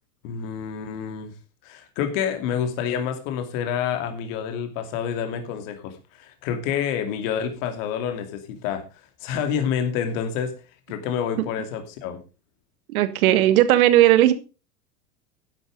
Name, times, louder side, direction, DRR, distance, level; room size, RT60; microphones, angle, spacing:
voice 1, 0.2-1.3 1.6-8.8 9.2-10.5 10.9-12.2, left 8 dB, 55° left, 6 dB, 2.6 m, -28 dB
voice 2, 12.9-14.3, right 13 dB, 65° right, 13 dB, 1.7 m, -16 dB
11.5 x 8.1 x 5.1 m, 0.33 s
hypercardioid pair, 105°, 46 cm